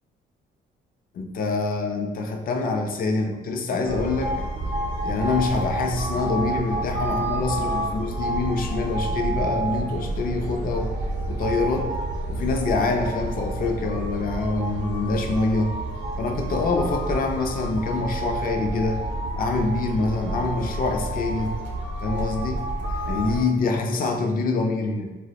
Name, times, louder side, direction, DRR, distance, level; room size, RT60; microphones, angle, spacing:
voice 1, 1.1-4.3 5.0-10.9 11.3-11.9 12.3-15.7 16.2-19.0 19.4-21.5 22.0-22.6 23.1-25.1, left 3 dB, 45° left, 4 dB, 0.4 m, -25 dB
sound 1, 3.9-23.4, right 1 dB, 70° right, 0.5 m, -29 dB
2.3 x 2.0 x 2.8 m, 1.3 s
cardioid pair, 90°, 20 cm